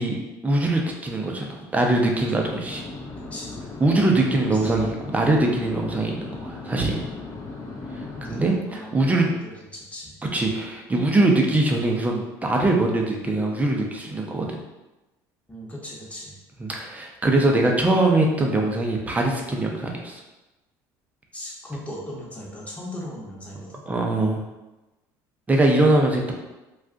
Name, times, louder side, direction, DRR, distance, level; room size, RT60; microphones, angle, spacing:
voice 1, 0.4-2.8 3.8-7.0 8.2-9.3 10.3-14.6 16.6-20.2 23.9-24.4 25.5-26.3, right 2 dB, 15° right, 1 dB, 0.6 m, -22 dB
sound 1, 2.6-8.6, left 3 dB, 35° left, 0.6 m, -37 dB
voice 2, 8.7-10.2 15.5-16.4 21.3-23.8, left 1 dB, 15° left, -4 dB, 1.0 m, -38 dB
2.3 x 2.3 x 3.7 m, 1.0 s
supercardioid pair, 90°, 9 cm